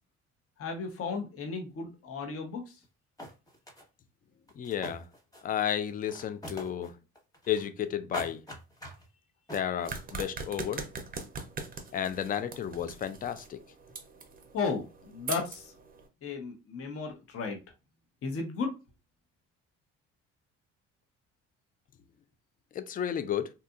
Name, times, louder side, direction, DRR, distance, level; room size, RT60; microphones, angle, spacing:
voice 1, 0.6-2.8 14.5-15.7 16.2-17.6 18.2-18.7, left 4 dB, 50° left, 0.8 m, -34 dB
sound 1, 2.8-2.9 3.2-3.8 4.5-5.6 5.9-6.9 7.2-7.9 8.1-9.1 9.5-10.0, equal, 10° left, 1.2 m, -42 dB
voice 2, 4.6-5.0 5.4-6.9 7.5-8.4 9.5-10.8 11.9-13.6 22.7-23.5, left 9 dB, 30° left, 0.4 m, -32 dB
sound 2, 9.9-16.1, right 4 dB, 30° right, 0.6 m, -42 dB
2.7 x 2.4 x 2.3 m
supercardioid pair, 70°, 30 cm